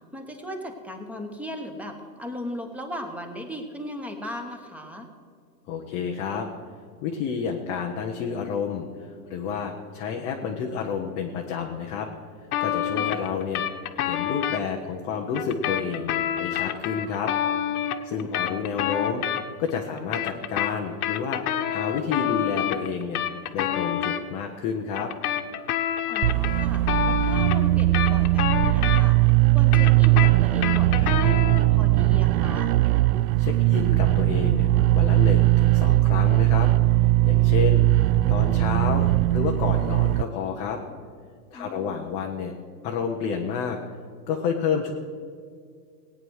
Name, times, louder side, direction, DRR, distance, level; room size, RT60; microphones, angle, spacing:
voice 1, 0.1-5.1 12.9-13.2 18.1-18.6 26.1-29.2 29.5-32.8 41.5-42.0, equal, 5° right, 5 dB, 1.0 m, -37 dB
voice 2, 5.7-6.5 7.0-12.1 12.6-13.7 13.9-17.3 18.0-19.2 19.6-21.4 21.7-23.2 23.5-25.1 33.4-37.9 38.3-40.8 41.5-42.5 42.8-43.8 44.3-44.9, left 6 dB, 15° left, 1 dB, 0.4 m, -30 dB
sound 1, 12.5-14.6 15.3-19.7 20.0-24.2 24.9-29.3 29.6-31.7, left 10 dB, 65° left, 1.1 m, -28 dB
sound 2, 26.2-40.2, right 18 dB, 60° right, 0.5 m, -20 dB
18.0 x 9.2 x 6.3 m, 2.1 s
supercardioid pair, 150°, 49 cm